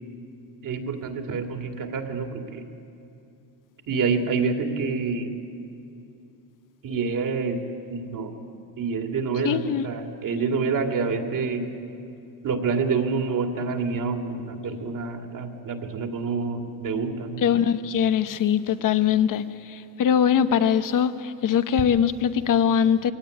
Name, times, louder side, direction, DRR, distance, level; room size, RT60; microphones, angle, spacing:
voice 1, 0.6-2.6 3.9-5.3 6.8-7.6 7.9-8.3 8.8-11.6 12.4-17.4, right 4 dB, 45° right, 4 dB, 2.7 m, -27 dB
voice 2, 9.4-9.9 17.4-23.1, left 8 dB, 45° left, 12 dB, 1.0 m, -22 dB
21.5 x 17.5 x 9.8 m, 2.6 s
cardioid pair, 110°, 44 cm